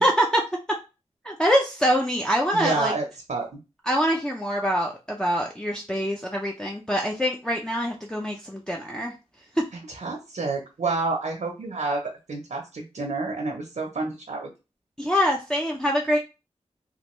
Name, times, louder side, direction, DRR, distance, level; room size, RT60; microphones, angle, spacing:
voice 1, 0.0-0.8 1.2-2.9 3.9-9.1 9.6-9.7 15.0-16.2, equal, 5° left, -1 dB, 0.6 m, -24 dB
voice 2, 2.5-3.6 9.9-14.5, right 3 dB, 80° right, 1 dB, 0.7 m, -29 dB
3.3 x 2.5 x 3.0 m, 0.29 s
wide cardioid pair, 55°, 12 cm